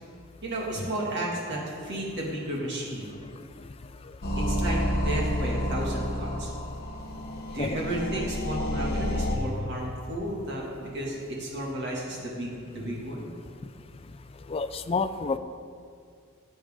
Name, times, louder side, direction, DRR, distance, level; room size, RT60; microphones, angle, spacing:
voice 1, 0.4-3.1 4.4-6.5 7.5-13.3, right 1 dB, 55° right, -3 dB, 2.1 m, -33 dB
sound 1, 4.2-9.4, left 1 dB, 45° left, 1.1 m, -29 dB
voice 2, 14.5-15.4, left 4 dB, 25° left, 11 dB, 0.4 m, -29 dB
14.0 x 7.8 x 3.7 m, 2.2 s
head